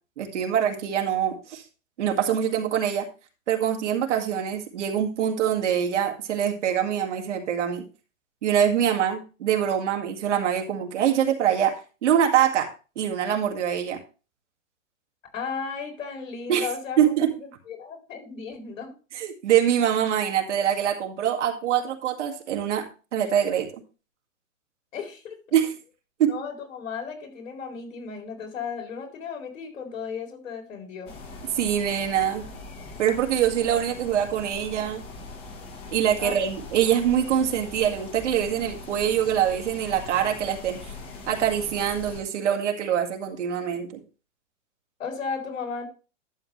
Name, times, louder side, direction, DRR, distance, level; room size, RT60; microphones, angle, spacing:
voice 1, 0.2-1.6 2.0-3.1 3.5-7.9 8.4-12.7 13.0-14.0 16.5-16.7 17.0-17.3 19.1-23.7 25.5-25.7 26.2-26.3 31.5-32.4 33.0-35.0 35.9-40.8 41.3-43.9, right 9 dB, 60° right, 4 dB, 2.1 m, -24 dB
voice 2, 15.3-17.0 17.7-19.0 24.9-25.4 26.3-31.1 36.2-36.4 45.0-45.9, left 6 dB, 75° left, 2 dB, 4.1 m, -35 dB
sound 1, 31.1-42.2, left 3 dB, 15° left, 1.2 m, -41 dB
11.5 x 7.3 x 3.1 m, 0.33 s
hypercardioid pair, 170°, 40 cm